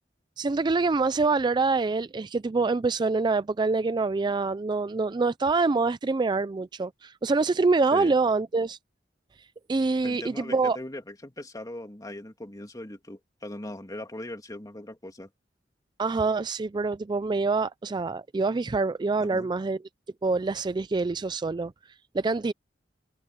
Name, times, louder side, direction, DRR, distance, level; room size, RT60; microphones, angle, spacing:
voice 1, 0.4-8.8 9.7-10.8 16.0-19.8 20.2-21.7 22.1-22.5, right 3 dB, 25° right, 0.4 m, -25 dB
voice 2, 10.0-15.3 19.2-19.5, left 1 dB, 20° left, 2.6 m, -40 dB
head